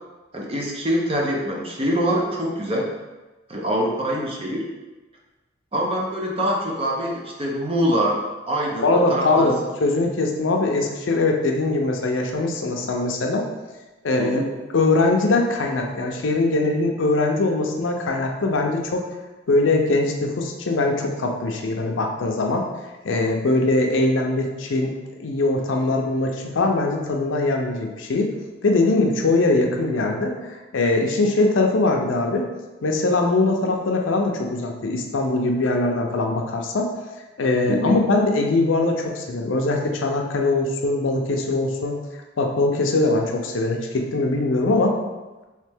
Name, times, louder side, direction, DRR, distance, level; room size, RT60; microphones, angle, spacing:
voice 1, 0.3-2.9 3.5-4.6 5.7-8.2 8.5-9.5 14.2-14.5 37.7-37.9, equal, 30° right, -2 dB, 0.6 m, -24 dB
voice 2, 8.8-13.5 14.0-14.4 14.7-19.0 19.5-22.7 23.0-24.9 25.2-28.3 28.6-30.3 30.7-32.4 32.8-36.9 37.4-42.0 42.4-45.0, left 2 dB, 75° left, 2 dB, 0.5 m, -21 dB
3.3 x 3.2 x 3.4 m, 1.2 s
head